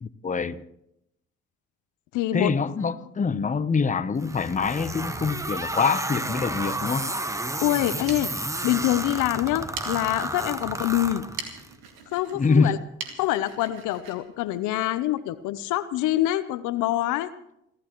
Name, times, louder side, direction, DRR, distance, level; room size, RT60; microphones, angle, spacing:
voice 1, 0.0-0.6 2.3-7.1 12.3-12.8, left 5 dB, 25° left, 0.9 m, -25 dB
voice 2, 2.1-2.5 7.6-8.3 8.6-11.2 12.1-12.8 13.2-17.3, left 14 dB, 70° left, 0.8 m, -25 dB
sound 1, 4.2-11.7, right 2 dB, 10° right, 1.0 m, -32 dB
sound 2, 7.8-15.3, right 6 dB, 90° right, 2.2 m, -43 dB
28.5 x 13.0 x 3.1 m
supercardioid pair, 65°, 31 cm